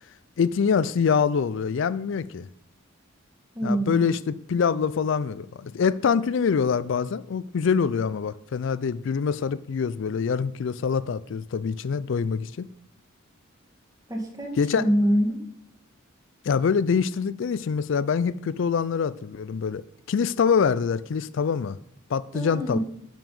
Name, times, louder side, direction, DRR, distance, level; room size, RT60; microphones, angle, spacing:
voice 1, 0.4-2.5 3.6-12.7 14.6-14.8 16.4-21.8 22.1-22.8, left 6 dB, 65° left, 0.4 m, -25 dB
voice 2, 3.5-4.2 14.1-15.4 22.3-22.8, equal, 15° right, 1.6 m, -25 dB
6.7 x 6.1 x 5.4 m
head